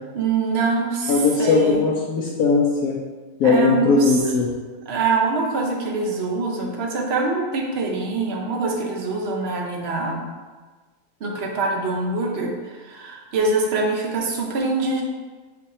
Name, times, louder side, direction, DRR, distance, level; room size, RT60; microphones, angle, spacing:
voice 1, 0.1-1.8 3.4-4.1 4.9-10.2 11.2-15.0, right 3 dB, 60° right, 0 dB, 0.7 m, -24 dB
voice 2, 1.1-3.0 3.4-4.5, left 4 dB, 70° left, -3 dB, 1.0 m, -19 dB
4.6 x 2.5 x 4.1 m, 1.3 s
omnidirectional pair, 1.7 m